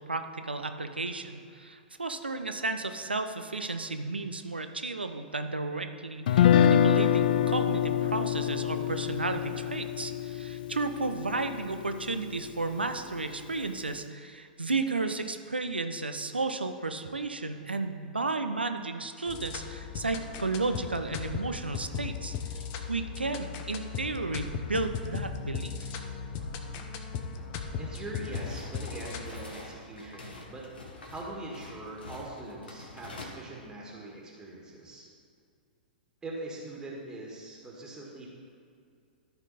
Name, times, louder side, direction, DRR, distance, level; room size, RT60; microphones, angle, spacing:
voice 1, 0.0-25.9, right 3 dB, 85° right, 8 dB, 0.6 m, -33 dB
Guitar, 6.3-12.4, left 10 dB, 60° left, 0.4 m, -26 dB
sound 1, 19.3-29.4, left 6 dB, 40° left, 0.8 m, -37 dB
voice 2, 27.8-30.7 31.1-35.1 36.2-38.3, right 2 dB, 15° right, -3 dB, 1.7 m, -42 dB
sound 2, 28.2-33.3, left 2 dB, 75° left, 1.5 m, -46 dB
13.0 x 4.5 x 4.1 m, 2.4 s
figure-of-eight pair, 105°, 5 cm